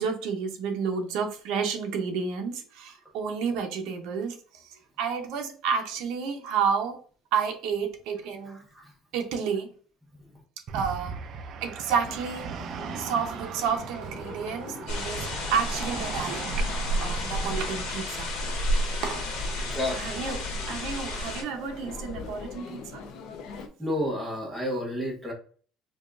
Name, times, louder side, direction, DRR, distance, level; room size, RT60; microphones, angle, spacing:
voice 1, 0.0-4.3 5.0-7.0 7.3-8.6 9.1-9.7 10.7-11.2 11.6-12.5 13.0-16.6 17.0-18.3 19.0-19.3 19.6-23.0, right 6 dB, 60° right, 3 dB, 0.7 m, -30 dB
voice 2, 8.5-8.8 19.6-20.3 23.8-25.3, left 1 dB, 5° right, -2 dB, 0.9 m, -31 dB
sound 1, 10.7-17.9, right 7 dB, 40° right, 0.3 m, -38 dB
sound 2, 12.0-23.7, left 5 dB, 55° left, 0.5 m, -43 dB
sound 3, 14.9-21.4, equal, 90° left, 1.5 m, -31 dB
4.9 x 2.3 x 2.5 m, 0.44 s
cardioid pair, 175°, 0 cm